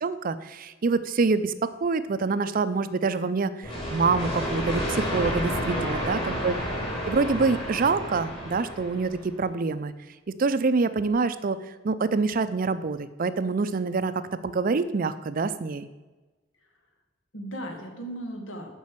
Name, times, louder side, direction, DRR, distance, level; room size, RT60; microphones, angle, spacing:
voice 1, 0.0-5.5 5.8-6.5 7.1-9.9 10.4-11.6 11.8-15.9, right 4 dB, 45° right, 13 dB, 0.5 m, -26 dB
sound 1, 3.6-9.3, equal, 30° left, 2.6 m, -31 dB
voice 2, 5.5-6.2 17.3-18.7, equal, 90° left, 2 dB, 1.8 m, -37 dB
7.4 x 5.5 x 7.4 m, 1.2 s
head